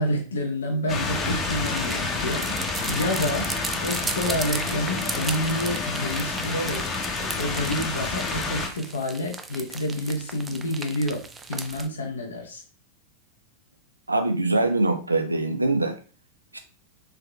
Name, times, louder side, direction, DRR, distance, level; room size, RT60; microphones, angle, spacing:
voice 1, 0.0-3.5 3.8-6.9 7.3-12.6, left 1 dB, 70° left, 2 dB, 0.6 m, -28 dB
sound 1, 0.9-8.7, left 3 dB, 25° left, 0.7 m, -29 dB
sound 2, 1.2-11.9, right 4 dB, 15° right, 0.3 m, -36 dB
voice 2, 14.1-16.0 16.5-16.6, right 2 dB, 80° right, 7 dB, 0.4 m, -23 dB
3.5 x 3.4 x 2.2 m, 0.36 s
figure-of-eight pair, 90°, 0 cm